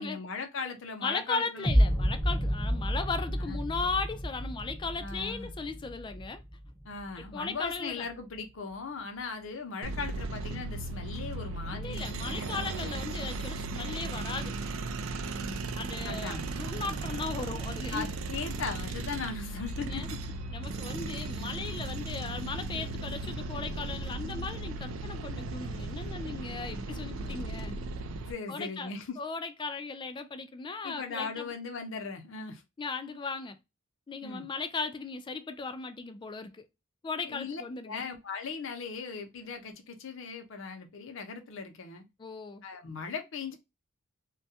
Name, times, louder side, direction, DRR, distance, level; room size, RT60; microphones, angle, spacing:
voice 1, 0.0-1.7 3.4-3.6 5.0-5.5 6.8-12.5 12.8-13.2 15.2-15.8 16.0-16.4 17.9-20.2 26.7-27.5 28.2-29.2 30.8-32.6 34.2-34.5 37.2-42.0 42.6-43.6, left 4 dB, 70° left, 0.7 m, -39 dB
voice 2, 1.0-6.4 7.3-8.1 11.7-14.6 15.8-18.1 19.8-20.1 20.5-28.1 28.5-31.5 32.8-33.6 34.1-36.7 37.0-38.1 42.2-42.6, left 4 dB, 25° left, 0.3 m, -37 dB
sound 1, 1.6-7.7, equal, 5° left, 0.7 m, -30 dB
sound 2, 9.8-28.3, right 2 dB, 75° right, 0.4 m, -36 dB
2.3 x 2.2 x 2.6 m
head